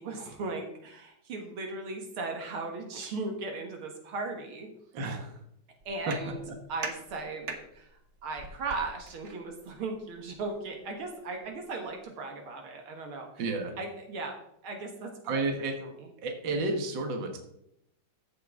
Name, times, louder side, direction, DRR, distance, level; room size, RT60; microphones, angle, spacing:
voice 1, 0.0-4.7 5.9-6.4 6.7-13.4 13.8-14.4 14.6-15.4 15.8-15.9, right 3 dB, 80° right, 3 dB, 2.4 m, -37 dB
voice 2, 4.9-5.4 6.1-6.6 13.4-13.8 15.3-15.8 16.2-17.4, right 3 dB, 60° right, 4 dB, 2.0 m, -32 dB
sound 1, 5.8-12.0, right 4 dB, 45° right, 1.1 m, -45 dB
14.0 x 7.8 x 3.7 m, 0.77 s
omnidirectional pair, 2.3 m